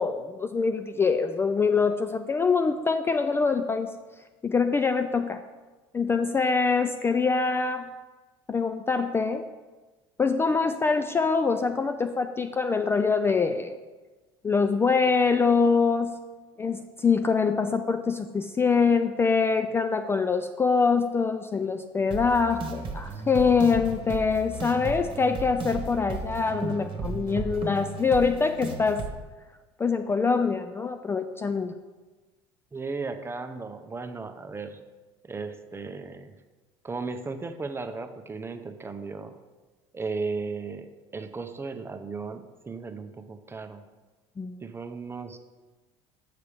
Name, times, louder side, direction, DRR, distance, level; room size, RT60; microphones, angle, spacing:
voice 1, 0.0-4.0 4.4-5.4 5.9-7.9 8.5-9.5 10.2-13.8 14.4-16.2 16.6-29.0 29.8-31.8 44.4-44.6, left 5 dB, 20° left, 8 dB, 0.3 m, -24 dB
sound 1, 22.1-29.1, right 3 dB, 40° right, 1.2 m, -35 dB
voice 2, 32.7-34.8 35.2-36.3 36.8-39.3 39.9-43.8 44.6-45.4, right 4 dB, 20° right, 8 dB, 0.6 m, -35 dB
6.7 x 6.6 x 3.3 m, 1.3 s
hypercardioid pair, 75°, 13 cm